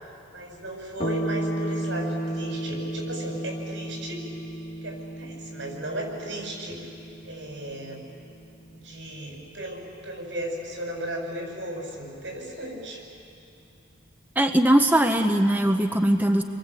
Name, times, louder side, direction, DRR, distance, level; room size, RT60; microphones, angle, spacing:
voice 1, 0.3-4.2 4.8-6.9 7.2-8.0 8.7-13.0, right 1 dB, 75° right, 0 dB, 7.7 m, -35 dB
sound 1, 1.0-9.9, right 1 dB, 30° left, 1.0 m, -34 dB
voice 2, 14.4-16.4, right 1 dB, 10° right, 4 dB, 0.9 m, -20 dB
30.0 x 23.0 x 8.4 m, 2.6 s
head